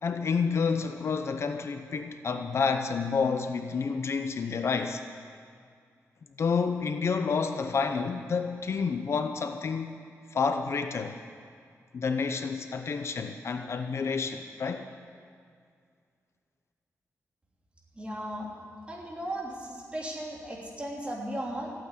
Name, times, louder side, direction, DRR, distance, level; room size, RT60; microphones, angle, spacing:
voice 1, 0.0-5.0 6.4-10.0 10.3-11.2 11.9-14.9, left 5 dB, 55° left, 7 dB, 0.8 m, -29 dB
voice 2, 17.9-18.5 18.9-21.7, right 1 dB, 20° right, -3 dB, 3.1 m, -36 dB
14.5 x 8.8 x 9.9 m, 2.2 s
wide cardioid pair, 135°, 5 cm